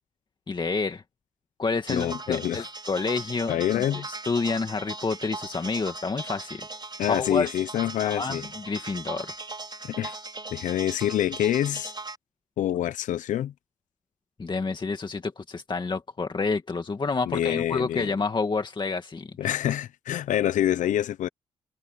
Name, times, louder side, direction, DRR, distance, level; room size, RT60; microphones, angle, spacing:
voice 1, 0.5-1.0 1.6-6.7 7.1-7.5 8.0-9.3 14.4-19.3, left 4 dB, 40° left, 2.1 m, -29 dB
voice 2, 1.9-2.7 3.5-4.1 7.0-8.5 9.8-10.2 10.5-11.9 12.6-13.5 17.3-18.1 19.4-21.3, left 11 dB, 85° left, 0.7 m, -26 dB
sound 1, 1.9-12.2, right 3 dB, 35° right, 5.2 m, -39 dB
cardioid pair, 65°, 13 cm